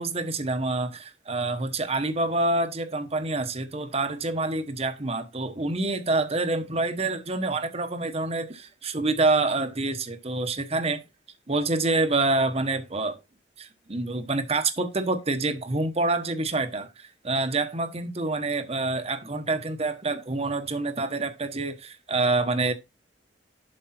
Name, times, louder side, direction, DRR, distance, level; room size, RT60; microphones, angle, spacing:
voice 1, 0.0-11.0 11.5-13.2 13.6-22.7, right 2 dB, 35° right, 1.1 m, -27 dB
7.7 x 5.3 x 4.3 m
head